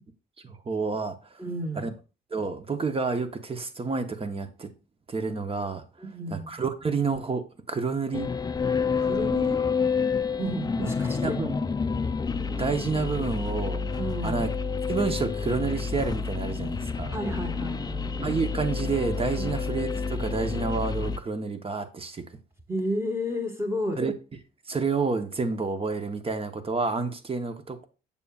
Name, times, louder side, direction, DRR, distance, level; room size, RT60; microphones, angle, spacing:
voice 1, 0.4-1.4 1.8-1.9 2.3-4.7 5.1-5.8 6.3-8.3 11.2-11.6 12.5-14.5 14.9-17.2 18.2-22.2 24.0-24.1 24.7-27.8, right 4 dB, 30° right, 0.9 m, -29 dB
voice 2, 1.4-1.9 6.0-6.5 9.0-9.6 10.4-11.4 14.0-14.5 17.1-18.1 19.4-19.6 22.7-24.0, equal, 15° right, 1.5 m, -32 dB
sound 1, 8.1-21.2, left 5 dB, 20° left, 0.4 m, -29 dB
6.9 x 6.8 x 2.4 m
cardioid pair, 90°, 20 cm